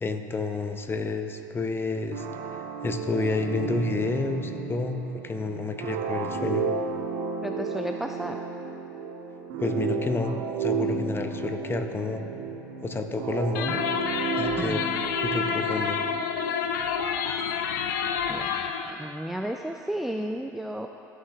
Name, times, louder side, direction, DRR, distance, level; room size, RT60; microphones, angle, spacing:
voice 1, 0.0-6.6 9.6-10.3 10.6-12.2 12.8-13.8 14.4-14.8 15.2-16.0, left 3 dB, 20° left, 6 dB, 0.7 m, -30 dB
sound 1, 2.1-16.7, right 5 dB, 65° right, 0.6 m, -32 dB
voice 2, 7.4-8.4 14.6-14.8 18.3-20.9, right 1 dB, ahead, 3 dB, 0.3 m, -33 dB
sound 2, 13.5-18.9, left 7 dB, 80° left, 0.5 m, -29 dB
14.0 x 5.7 x 2.4 m, 3.0 s
hypercardioid pair, 75°, 10 cm